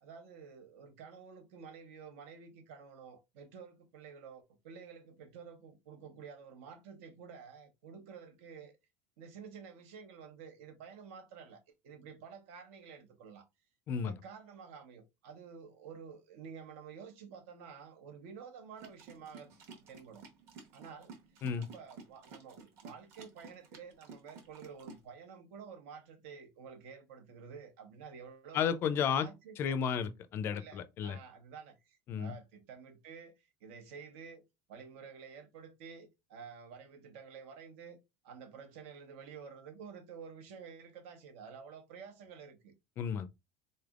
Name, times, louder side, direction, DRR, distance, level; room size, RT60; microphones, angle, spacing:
voice 1, 0.0-8.7 9.2-13.5 14.0-19.5 19.9-20.2 20.7-21.1 21.6-28.7 29.0-29.8 30.6-33.3 33.6-34.4 34.7-38.0 38.2-42.7, right 6 dB, 85° right, 1.1 m, -50 dB
sound 1, 18.8-25.0, right 4 dB, 40° right, 1.0 m, -53 dB
voice 2, 28.5-29.3 29.6-31.2 32.1-32.3 43.0-43.3, left 7 dB, 30° left, 0.4 m, -33 dB
4.0 x 3.3 x 2.4 m
cardioid pair, 175°, 7 cm